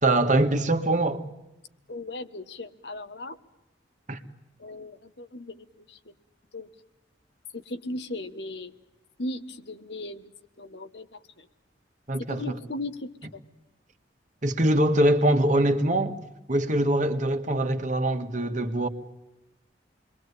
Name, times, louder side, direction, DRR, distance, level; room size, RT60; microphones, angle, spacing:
voice 1, 0.0-1.2 4.1-4.2 12.1-12.6 14.4-16.2 16.5-18.9, right 1 dB, 45° right, 2.0 m, -23 dB
voice 2, 1.9-3.4 4.6-6.1 6.5-6.7 7.5-8.7 9.2-10.3 10.6-11.5 12.2-13.4, left 2 dB, 65° left, 1.5 m, -37 dB
28.5 x 22.5 x 8.6 m
head